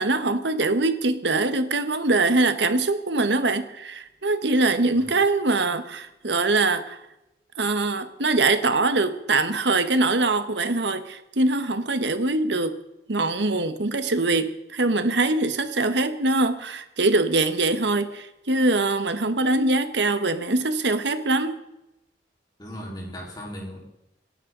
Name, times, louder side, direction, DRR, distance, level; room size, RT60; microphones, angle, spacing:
voice 1, 0.0-7.0 7.6-12.8 13.1-21.6, right 2 dB, 75° right, 1.3 m, -23 dB
voice 2, 22.6-23.8, equal, 25° left, 4.2 m, -37 dB
26.0 x 11.0 x 3.9 m
head